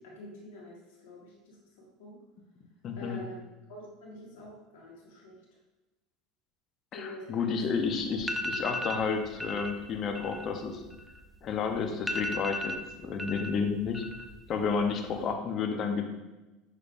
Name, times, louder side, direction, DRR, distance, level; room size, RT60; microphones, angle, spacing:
voice 1, 0.0-2.2 2.9-3.4 3.7-5.4 6.9-7.4 7.8-8.1, left 1 dB, 70° left, -4 dB, 1.4 m, -46 dB
voice 2, 2.8-3.2 6.9-10.8 11.4-12.8 13.0-14.0 14.5-16.1, left 5 dB, 45° left, 4 dB, 0.7 m, -31 dB
sound 1, 7.8-7.9 8.2-9.0 9.4-9.7 10.0-11.5 11.8-11.9 12.1-13.5 13.8-14.4 14.7-15.2, left 1 dB, 5° right, 0.4 m, -35 dB
6.1 x 3.2 x 2.5 m, 1.1 s
hypercardioid pair, 75°, 0 cm